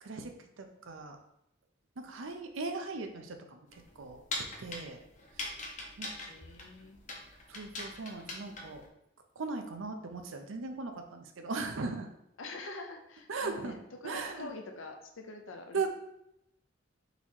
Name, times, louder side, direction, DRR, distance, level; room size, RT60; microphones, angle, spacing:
voice 1, 0.0-0.3 0.6-1.2 2.0-4.2 4.6-5.0 6.0-6.1 7.5-8.8 9.4-12.1 13.3-13.8 14.0-14.5 15.7-15.9, right 4 dB, 80° right, 5 dB, 0.6 m, -38 dB
sound 1, 3.7-8.9, left 2 dB, 40° left, 0.7 m, -41 dB
voice 2, 6.2-7.0 12.4-15.9, left 2 dB, 80° left, 4 dB, 0.6 m, -45 dB
4.0 x 2.9 x 4.3 m, 0.80 s
head